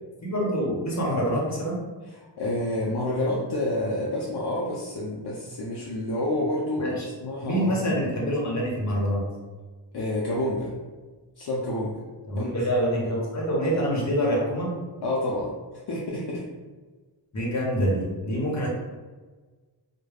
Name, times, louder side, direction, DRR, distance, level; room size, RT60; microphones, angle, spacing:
voice 1, 0.2-1.8 6.8-7.1 7.4-9.2 12.3-14.8 17.3-18.7, equal, 40° left, -3 dB, 0.9 m, -26 dB
voice 2, 2.1-6.9 7.2-8.0 9.9-10.7 11.4-11.9 12.3-12.6 13.1-13.3 15.0-15.5 15.9-16.4, left 1 dB, 65° left, -4 dB, 0.5 m, -29 dB
2.2 x 2.1 x 3.3 m, 1.3 s
wide cardioid pair, 70°, 43 cm